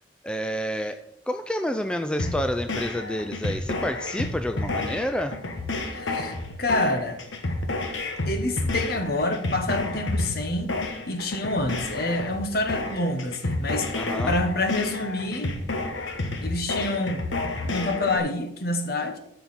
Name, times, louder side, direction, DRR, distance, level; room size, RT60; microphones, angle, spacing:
voice 1, 0.2-5.4 13.9-14.4, equal, 5° left, 0.3 m, -29 dB
sound 1, 2.2-18.2, left 2 dB, 80° left, 1.2 m, -30 dB
voice 2, 5.9-7.2 8.2-10.7 11.1-15.5 16.4-17.2 17.6-19.2, left 2 dB, 50° left, 1.1 m, -27 dB
13.0 x 5.6 x 4.1 m
head